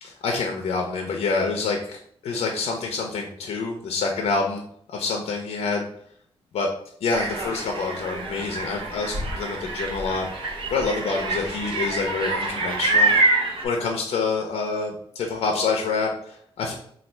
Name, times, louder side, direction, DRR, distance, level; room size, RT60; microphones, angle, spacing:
voice 1, 0.0-4.6 4.9-5.9 6.5-6.7 7.0-10.3 10.7-13.1 13.6-16.7, left 4 dB, 75° left, 2 dB, 0.5 m, -27 dB
sound 1, 7.1-13.6, right 2 dB, 55° right, 0.7 m, -26 dB
3.2 x 2.3 x 4.3 m, 0.63 s
wide cardioid pair, 175°, 11 cm